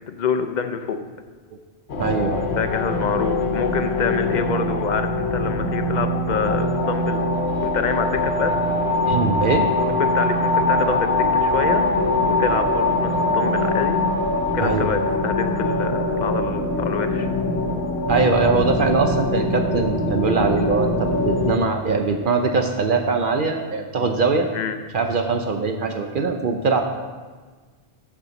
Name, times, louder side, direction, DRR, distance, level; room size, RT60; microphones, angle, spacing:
voice 1, 0.1-1.0 2.6-7.3 7.6-8.5 10.0-11.9 12.3-14.0 14.5-17.3 24.5-24.8, left 5 dB, 50° left, 8 dB, 0.7 m, -26 dB
sound 1, 1.9-21.6, left 2 dB, 80° left, 1.2 m, -22 dB
voice 2, 2.0-2.4 9.1-9.7 14.6-14.9 18.1-24.5 24.9-26.8, right 4 dB, 55° right, 4 dB, 0.8 m, -21 dB
13.5 x 5.8 x 3.9 m, 1.4 s
omnidirectional pair, 1.1 m